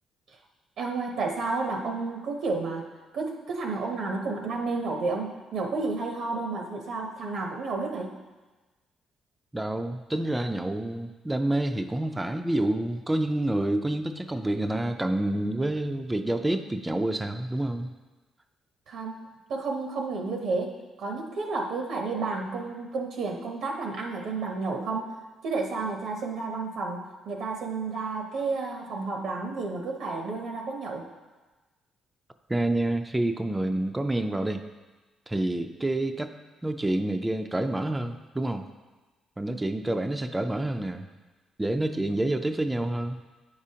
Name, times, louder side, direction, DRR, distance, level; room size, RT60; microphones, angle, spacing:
voice 1, 0.8-2.9 3.1-8.1 18.9-19.2 19.5-25.1 25.4-31.1, right 3 dB, 75° right, 2 dB, 0.7 m, -31 dB
voice 2, 9.5-17.9 32.5-34.6 35.3-36.3 36.6-38.7 39.4-41.1 41.6-43.2, right 1 dB, 15° right, 6 dB, 0.4 m, -28 dB
9.5 x 4.9 x 2.8 m, 1.2 s
cardioid pair, 90°, 0 cm